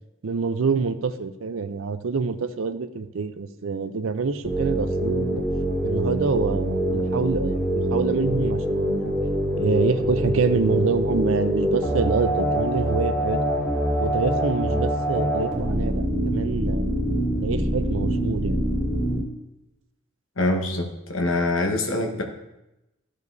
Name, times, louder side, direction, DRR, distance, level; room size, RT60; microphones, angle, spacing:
voice 1, 0.2-5.4 5.8-9.1 9.6-13.5 14.0-16.9 17.4-18.6, right 4 dB, 70° right, 11 dB, 0.5 m, -26 dB
sound 1, 4.4-19.2, equal, ahead, 1.8 m, -24 dB
voice 2, 20.4-22.2, left 2 dB, 70° left, 3 dB, 1.2 m, -24 dB
14.0 x 5.2 x 2.7 m, 0.93 s
head